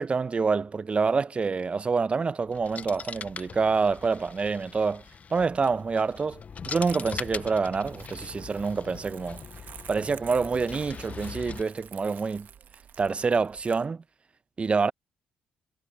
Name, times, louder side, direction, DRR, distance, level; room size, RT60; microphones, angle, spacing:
voice 1, 0.0-5.0 5.3-9.4 9.9-12.5 13.0-14.0 14.6-14.9, right 4 dB, 35° right, 0.9 m, -27 dB
sound 1, 2.4-11.6, left 6 dB, 45° left, 0.9 m, -41 dB
Crumpling crinkling, 6.9-13.9, right 8 dB, 55° right, 1.4 m, -49 dB
hypercardioid pair, 50°, 4 cm